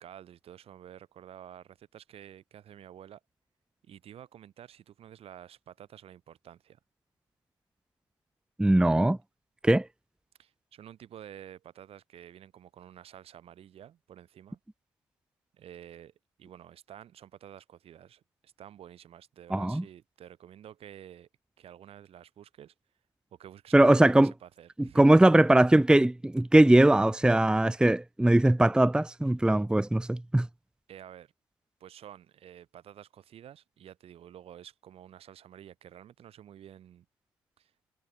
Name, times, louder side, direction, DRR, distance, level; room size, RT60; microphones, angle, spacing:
voice 1, 0.0-3.2 3.8-6.8 10.4-14.6 15.5-16.1 16.4-21.3 21.6-22.7 23.3-25.0 30.9-31.3 31.8-37.1 37.6-37.7, right 10 dB, 65° right, 4.5 m, -50 dB
voice 2, 8.6-9.2 9.6-9.8 19.5-19.8 23.7-24.3 25.0-30.5, right 1 dB, 10° right, 0.6 m, -21 dB
hypercardioid pair, 50°, 11 cm